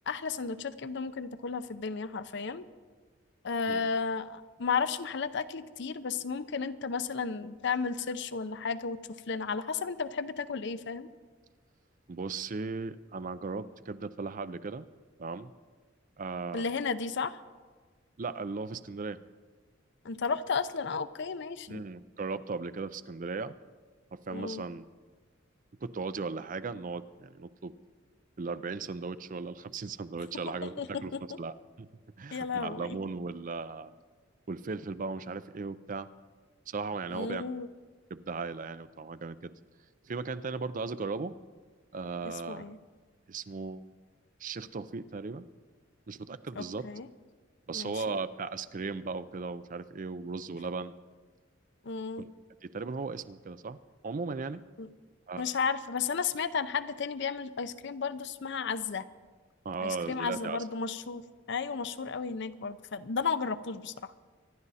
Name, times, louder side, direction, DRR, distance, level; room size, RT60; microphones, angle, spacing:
voice 1, 0.1-2.6 3.4-9.0 9.3-11.1 16.5-17.4 20.0-21.8 24.3-24.6 30.8-31.4 32.3-33.0 37.1-37.7 42.5-42.8 46.6-47.1 47.7-48.1 51.8-52.2 54.8-54.9 55.4-59.1 59.8-61.2 61.5-64.1, left 5 dB, 65° left, 13 dB, 0.6 m, -33 dB
voice 2, 12.1-14.9 15.2-15.5 16.2-16.7 18.2-19.2 21.7-23.5 24.1-24.8 25.8-27.7 28.4-31.1 31.4-31.9 32.2-34.0 34.5-36.1 36.7-37.4 38.1-39.5 40.0-41.4 41.9-42.7 43.3-43.8 44.4-45.5 46.1-46.9 47.7-50.9 52.2-52.3 52.6-53.8 54.0-54.6 55.3-55.5 59.6-60.6, right 4 dB, 45° right, 14 dB, 0.5 m, -37 dB
24.5 x 11.0 x 4.2 m, 1.4 s
head